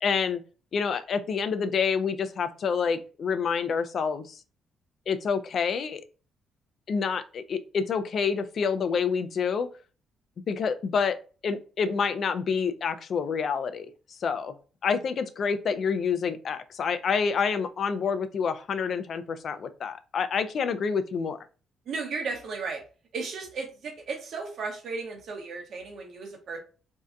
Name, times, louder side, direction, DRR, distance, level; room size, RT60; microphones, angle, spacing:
voice 1, 0.0-0.4 0.7-4.4 5.1-6.0 6.9-9.7 10.5-11.2 11.4-14.5 14.8-21.4, left 6 dB, 55° left, 12 dB, 0.3 m, -28 dB
voice 2, 21.9-22.8 23.1-26.6, right 4 dB, 65° right, 3 dB, 0.8 m, -35 dB
2.6 x 2.2 x 2.4 m, 0.36 s
cardioid pair, 90°, 0 cm